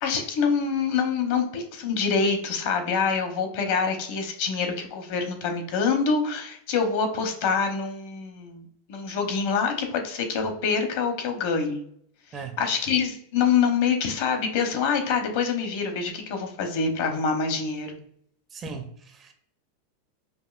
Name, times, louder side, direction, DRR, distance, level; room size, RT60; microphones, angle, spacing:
voice 1, 0.0-11.8 12.3-18.0, left 5 dB, 55° left, 5 dB, 0.8 m, -26 dB
voice 2, 18.5-19.3, right 4 dB, 20° right, 6 dB, 0.4 m, -38 dB
5.3 x 2.5 x 2.4 m, 0.68 s
supercardioid pair, 165°, 0 cm